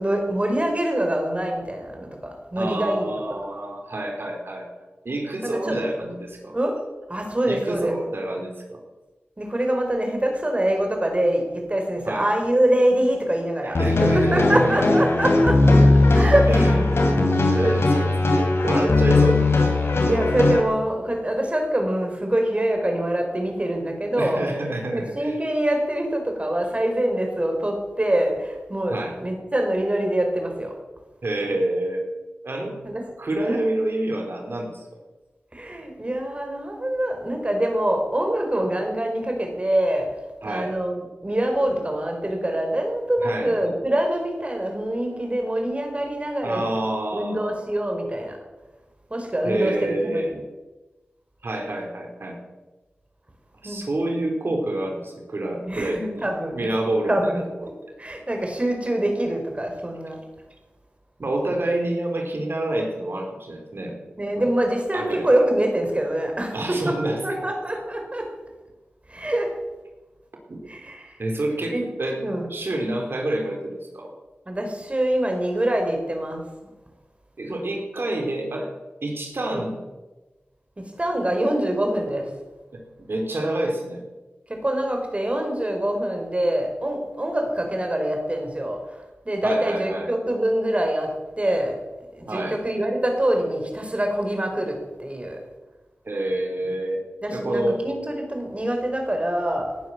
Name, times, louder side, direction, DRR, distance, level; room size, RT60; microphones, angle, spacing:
voice 1, 0.0-3.1 5.4-5.8 6.5-6.8 7.1-8.0 9.4-15.8 16.1-16.5 19.9-24.4 24.7-30.7 32.8-33.0 33.3-33.6 35.5-46.7 47.1-48.4 49.1-50.4 53.6-53.8 55.6-56.6 57.1-57.7 58.0-60.2 64.2-68.3 69.1-69.5 70.7-71.2 71.7-71.9 72.2-72.5 74.5-76.4 79.5-79.6 80.8-82.3 84.5-89.0 89.2-91.8 92.1-95.4 97.2-99.8, right 1 dB, 30° right, 3 dB, 4.8 m, -25 dB
voice 2, 2.6-6.5 7.5-8.8 12.1-12.3 13.6-14.7 16.5-16.8 17.6-19.4 24.2-25.4 28.9-29.2 31.2-32.0 32.4-32.8 33.2-34.8 40.4-40.7 43.2-43.5 46.4-47.7 49.4-50.4 51.4-52.4 53.6-56.3 56.5-57.4 61.2-64.5 64.9-65.3 66.5-67.5 70.5-70.7 71.2-72.2 72.5-74.1 77.4-78.7 79.0-79.8 82.7-84.0 89.4-90.1 92.3-92.6 96.0-97.0 97.3-97.8, right 1 dB, 65° right, 2 dB, 4.2 m, -28 dB
sound 1, 13.7-20.6, left 2 dB, 90° left, 3.3 m, -18 dB
18.0 x 11.0 x 7.5 m, 1.1 s
wide cardioid pair, 60°, 4 cm